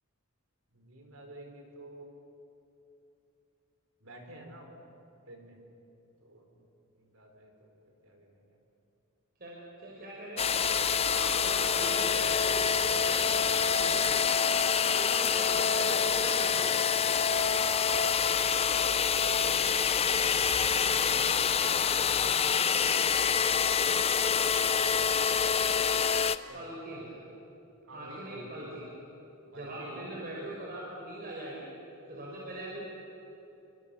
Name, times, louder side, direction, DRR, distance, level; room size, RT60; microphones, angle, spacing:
voice 1, 0.7-2.1 4.0-4.8 5.3-5.6 6.2-6.6 6.9-8.5 13.3-13.4 18.4-19.8 20.0-22.1 26.5-26.6 27.9-28.7 29.5-30.4, right 1 dB, 65° right, 3 dB, 4.8 m, -50 dB
voice 2, 9.8-10.5 11.0-14.3 14.9-16.8 26.5-27.2 27.9-28.8 29.5-31.7 32.1-32.9, right 1 dB, 45° right, -4 dB, 5.2 m, -41 dB
sound 1, 10.4-26.4, left 6 dB, 30° left, 0.6 m, -26 dB
28.0 x 24.5 x 7.2 m, 3.0 s
head